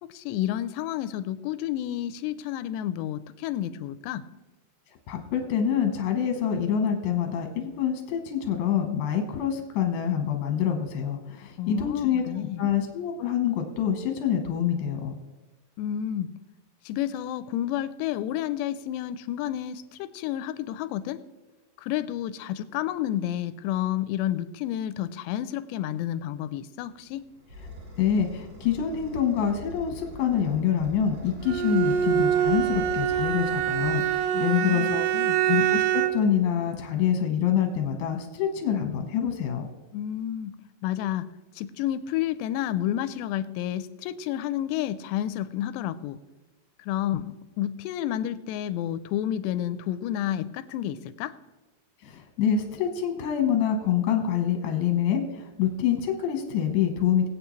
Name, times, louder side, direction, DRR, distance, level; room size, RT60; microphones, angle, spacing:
voice 1, 0.0-4.3 11.6-12.6 15.8-16.3 16.9-21.2 21.8-27.2 34.3-35.4 39.9-40.5 40.8-41.3 41.6-46.2 46.8-51.3, left 12 dB, 90° left, 14 dB, 2.8 m, -30 dB
voice 2, 5.1-12.2 12.6-15.2 28.0-35.1 35.5-39.7 52.0-57.3, left 8 dB, 70° left, 5 dB, 2.0 m, -26 dB
sound 1, 26.9-34.8, left 2 dB, 40° right, 5.1 m, -43 dB
Bowed string instrument, 31.5-36.3, right 10 dB, 90° right, 2.8 m, -25 dB
21.0 x 8.6 x 3.1 m, 1.2 s
omnidirectional pair, 4.9 m